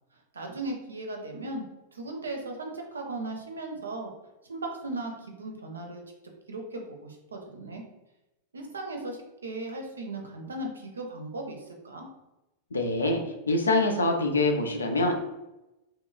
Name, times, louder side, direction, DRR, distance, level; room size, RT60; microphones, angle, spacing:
voice 1, 0.3-1.6 1.9-4.1 4.5-6.0 6.5-7.8 8.5-12.1, right 2 dB, 75° right, 2 dB, 0.5 m, -37 dB
voice 2, 12.7-13.2 13.5-15.1, left 2 dB, 75° left, 4 dB, 0.4 m, -24 dB
2.8 x 2.2 x 2.4 m, 0.96 s
figure-of-eight pair, 90°, 0 cm